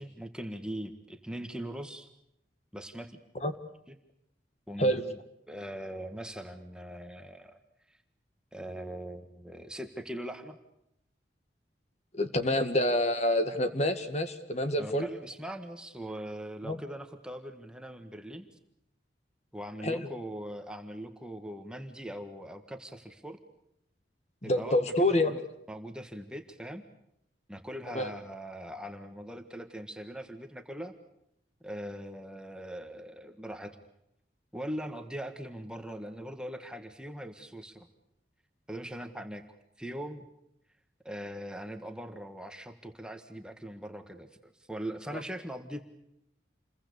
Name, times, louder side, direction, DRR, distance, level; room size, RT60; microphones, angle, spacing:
voice 1, 0.0-2.1 2.7-3.2 3.9-4.0 4.7-5.2 5.5-7.6 7.9-8.0 8.5-10.6 14.8-18.5 19.5-23.4 24.4-25.3 25.7-26.8 27.5-30.9 31.6-33.8 34.5-37.9 38.7-39.4 39.8-40.2 41.0-45.8, right 1 dB, 5° right, 6 dB, 1.6 m, -41 dB
voice 2, 12.1-15.1 16.6-16.8 19.8-20.1 24.4-25.4 27.9-28.1 45.1-45.2, left 1 dB, 35° left, 9 dB, 1.9 m, -27 dB
29.0 x 22.5 x 6.9 m, 0.80 s
head